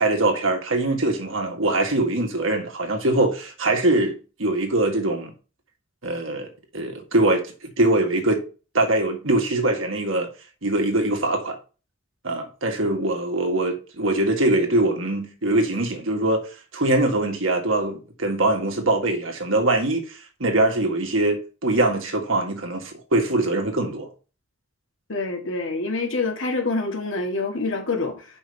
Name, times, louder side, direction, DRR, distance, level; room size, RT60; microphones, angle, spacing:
voice 1, 0.0-5.3 6.0-8.4 8.7-10.3 10.6-11.6 12.2-16.4 16.7-24.1, right 2 dB, 65° right, 1.8 m, -22 dB
voice 2, 25.1-28.3, left 3 dB, 65° left, 1.9 m, -26 dB
5.4 x 5.2 x 6.5 m
head